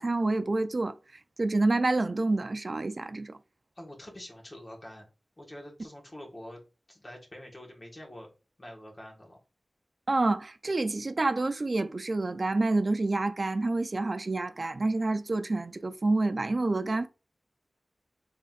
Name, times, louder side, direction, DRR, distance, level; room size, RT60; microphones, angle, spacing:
voice 1, 0.0-3.4 10.1-17.1, right 2 dB, 50° right, 0.3 m, -28 dB
voice 2, 3.8-5.1 5.4-6.6 6.9-8.3 8.6-9.4, left 1 dB, 35° left, 1.5 m, -46 dB
4.0 x 3.9 x 2.4 m
wide cardioid pair, 65°, 0 cm